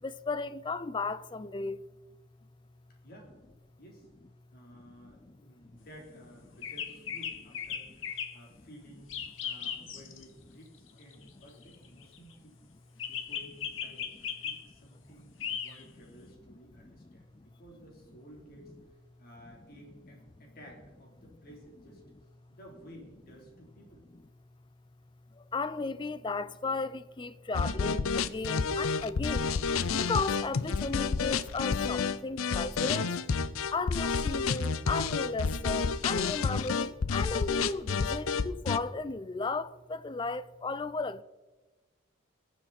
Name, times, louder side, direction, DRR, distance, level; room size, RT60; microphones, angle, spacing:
voice 1, 0.0-1.8 5.6-5.7 16.8-17.5 25.3-29.5 29.9-33.1 33.7-41.2, left 3 dB, 25° left, 0.4 m, -35 dB
voice 2, 3.0-3.3 3.8-4.1 4.5-8.0 8.3-9.1 9.4-12.5 13.1-15.3 15.6-22.0 22.5-24.1, equal, 45° left, 3.7 m, -54 dB
sound 1, 6.6-8.4 9.1-10.2 11.1-12.2 13.0-14.6 15.4-15.8, left 8 dB, 70° left, 1.3 m, -37 dB
sound 2, 27.5-38.8, left 5 dB, 90° left, 0.6 m, -30 dB
20.5 x 7.3 x 4.3 m
head